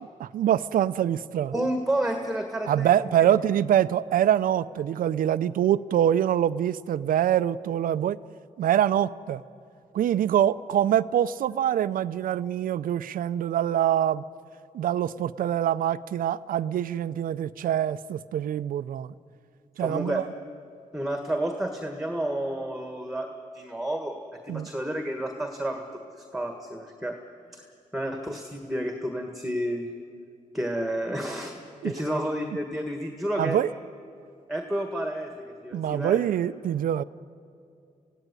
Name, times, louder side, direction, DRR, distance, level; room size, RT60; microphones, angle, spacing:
voice 1, 0.0-1.5 2.7-8.2 8.6-9.4 9.9-14.2 14.7-19.1 19.8-20.2 24.5-24.7 31.8-31.9 33.4-33.7 35.7-37.0, right 10 dB, 85° right, 16 dB, 0.5 m, -24 dB
voice 2, 1.5-3.0 19.8-20.2 20.9-23.3 23.5-24.2 24.5-25.8 26.3-27.2 27.5-27.7 27.9-29.9 30.5-31.6 31.8-33.6 34.5-36.2, right 1 dB, ahead, 5 dB, 1.6 m, -30 dB
25.0 x 16.0 x 9.7 m, 2.5 s
cardioid pair, 100°, 14 cm